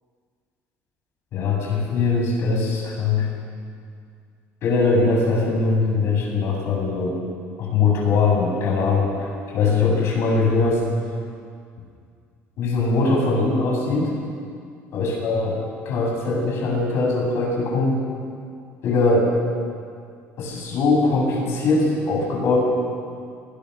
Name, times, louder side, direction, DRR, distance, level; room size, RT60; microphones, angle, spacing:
voice 1, 1.3-3.3 4.6-7.2 7.6-9.2 9.5-10.8 12.6-14.1 14.9-18.1 18.8-19.3 20.4-22.6, left 3 dB, 55° left, -1 dB, 7.8 m, -21 dB
25.5 x 21.0 x 6.9 m, 2.2 s
cardioid pair, 150°, 5 cm